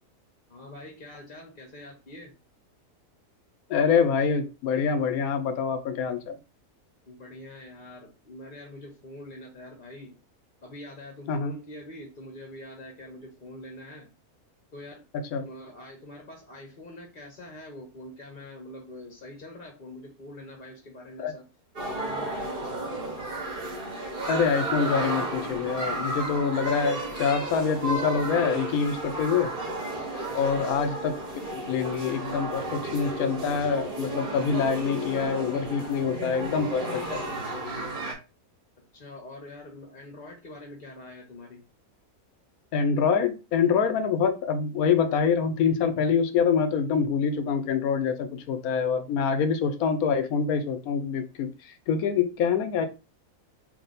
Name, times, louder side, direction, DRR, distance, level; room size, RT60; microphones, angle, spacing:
voice 1, 0.5-2.3 7.1-10.1 10.6-14.1 14.7-15.0 15.4-21.5 21.8-23.3 29.1-29.3 30.3-30.7 38.8-41.6, left 1 dB, 40° left, 0.9 m, -44 dB
voice 2, 3.7-6.4 11.3-11.5 15.1-15.4 21.2-21.3 24.3-29.5 30.3-31.2 31.5-37.2 42.7-52.9, left 6 dB, 75° left, 1.0 m, -25 dB
sound 1, 21.8-38.1, right 2 dB, 35° right, 1.3 m, -33 dB
3.5 x 2.7 x 3.9 m
omnidirectional pair, 1.6 m